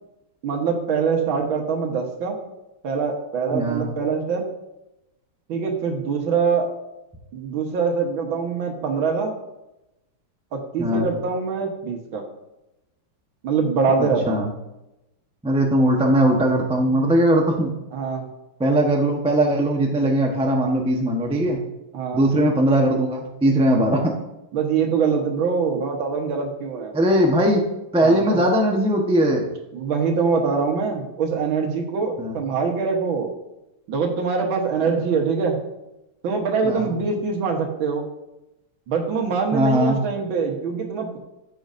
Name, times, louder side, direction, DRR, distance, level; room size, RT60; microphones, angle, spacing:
voice 1, 0.4-2.4 2.8-4.5 5.5-6.7 7.3-9.3 10.5-12.2 13.4-14.5 17.9-18.3 21.9-22.2 24.5-26.9 28.0-28.4 29.7-33.3 33.9-35.6 36.2-38.0 38.9-41.2, right 5 dB, 65° right, 2 dB, 1.9 m, -24 dB
voice 2, 3.5-3.9 10.8-11.1 14.0-14.5 15.4-17.7 18.6-21.6 22.1-24.1 26.9-27.7 27.9-29.5 32.2-32.4 36.6-36.9 39.5-40.0, right 1 dB, 10° right, 0 dB, 0.3 m, -19 dB
13.5 x 6.3 x 2.6 m, 0.92 s
omnidirectional pair, 2.4 m